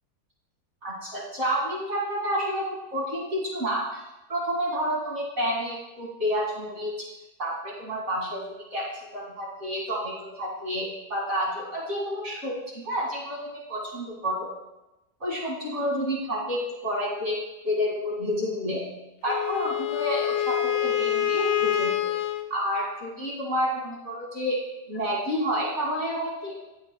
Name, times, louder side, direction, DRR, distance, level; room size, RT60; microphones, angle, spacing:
voice 1, 0.8-4.0 4.3-6.9 7.4-8.4 8.7-14.5 15.2-18.8 19.2-22.1 22.5-24.6 24.9-26.5, equal, 45° right, -4 dB, 2.4 m, -29 dB
Wind instrument woodwind instrument, 19.3-22.5, left 10 dB, 85° left, 1.2 m, -26 dB
19.0 x 7.3 x 2.2 m, 0.97 s
omnidirectional pair, 1.7 m